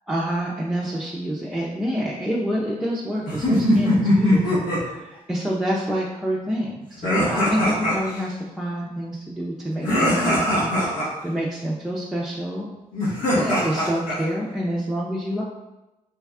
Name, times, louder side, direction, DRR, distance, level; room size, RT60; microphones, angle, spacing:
voice 1, 0.1-12.7 13.3-15.4, equal, 5° right, -5 dB, 0.6 m, -27 dB
sound 1, 3.3-4.8 7.0-8.2 9.8-11.1 12.9-14.2, left 1 dB, 80° left, 1.3 m, -21 dB
3.4 x 2.2 x 3.4 m, 0.98 s
cardioid pair, 60°, 14 cm